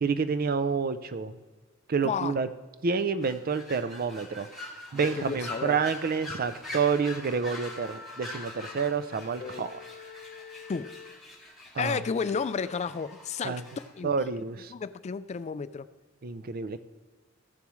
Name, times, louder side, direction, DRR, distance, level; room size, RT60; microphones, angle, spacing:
voice 1, 0.0-1.4 1.9-2.5 2.8-4.5 4.9-9.8 11.7-12.0 13.4-13.6 14.0-14.7 16.2-16.8, right 5 dB, 45° right, 12 dB, 0.5 m, -29 dB
voice 2, 2.0-2.4 5.1-5.8 9.4-9.7 10.7-10.9 11.8-13.6 14.0-14.1 14.7-15.9, left 5 dB, 35° left, 15 dB, 0.3 m, -32 dB
sound 1, 3.2-13.9, left 2 dB, ahead, 2.1 m, -44 dB
Wind instrument woodwind instrument, 7.5-11.2, left 5 dB, 55° left, 0.8 m, -47 dB
14.5 x 7.0 x 3.1 m, 1.3 s
head